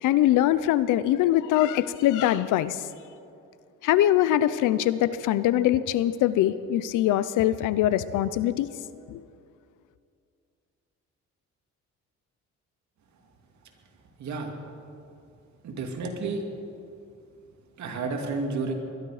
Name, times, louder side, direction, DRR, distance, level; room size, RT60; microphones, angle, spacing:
voice 1, 0.0-2.8 3.8-8.7 9.1-9.2, left 13 dB, 90° left, 16 dB, 0.7 m, -23 dB
voice 2, 14.2-14.5 15.6-16.4 17.8-18.7, right 3 dB, 70° right, 3 dB, 2.4 m, -31 dB
21.5 x 12.0 x 4.9 m, 2.5 s
cardioid pair, 90°, 30 cm